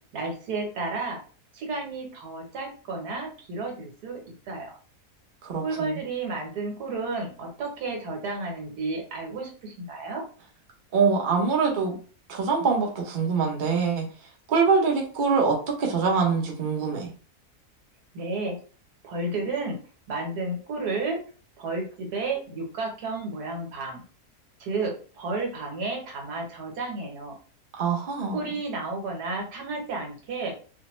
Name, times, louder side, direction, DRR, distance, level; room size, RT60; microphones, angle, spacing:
voice 1, 0.1-1.2 1.5-4.2 4.5-4.8 5.6-10.2 18.1-18.6 19.0-19.8 20.1-21.2 21.6-24.0 24.6-27.3 28.3-30.5, right 3 dB, 80° right, 1 dB, 1.5 m, -32 dB
voice 2, 5.4-6.0 10.9-12.0 12.3-14.0 14.5-17.1 27.8-28.4, right 5 dB, 45° right, 0 dB, 0.7 m, -24 dB
3.1 x 2.0 x 2.9 m, 0.39 s
omnidirectional pair, 1.7 m